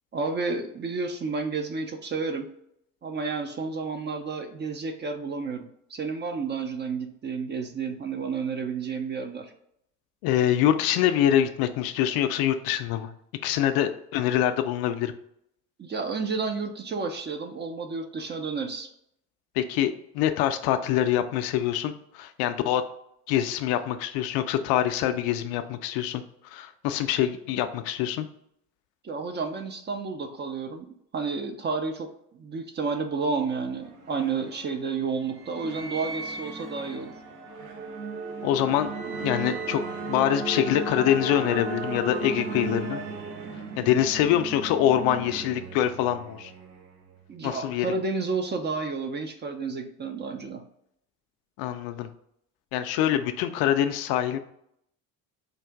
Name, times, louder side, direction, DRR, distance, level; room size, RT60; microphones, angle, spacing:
voice 1, 0.1-2.5 3.0-9.5 13.8-13.9 15.8-18.9 29.0-30.9 31.1-32.1 32.4-37.1 47.3-50.6, right 4 dB, 25° right, 6 dB, 0.5 m, -31 dB
voice 2, 10.2-13.1 13.4-15.1 19.6-22.8 23.3-28.3 38.4-38.9 39.2-39.8 40.1-43.0 43.8-46.5 47.4-47.9 51.6-52.1 52.7-54.4, left 11 dB, 55° left, 8 dB, 0.5 m, -25 dB
sound 1, 33.5-47.2, right 3 dB, 90° right, 0.6 m, -36 dB
4.6 x 2.4 x 3.5 m, 0.73 s
figure-of-eight pair, 55°, 46 cm